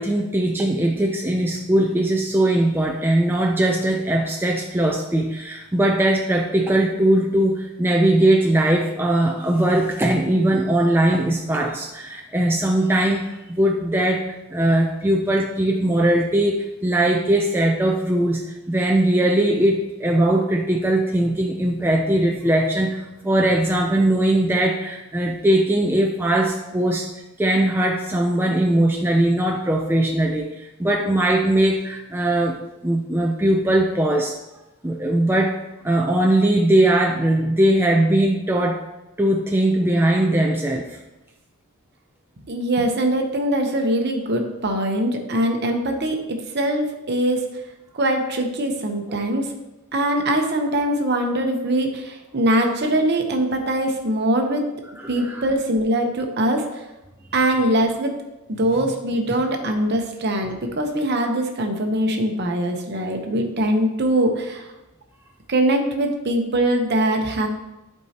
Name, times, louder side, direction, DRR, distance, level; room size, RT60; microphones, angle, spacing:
voice 1, 0.0-18.4 18.7-27.1 27.4-34.4 34.8-35.6 35.8-38.8 39.2-41.0 49.1-49.2 55.0-55.4, right 1 dB, 10° right, 0 dB, 0.4 m, -20 dB
voice 2, 42.5-46.2 46.5-47.4 47.9-49.5 49.9-54.7 55.1-56.7 57.3-58.1 58.6-64.7 65.5-67.5, right 1 dB, 50° right, 4 dB, 0.9 m, -22 dB
11.5 x 4.5 x 2.9 m, 1.0 s
head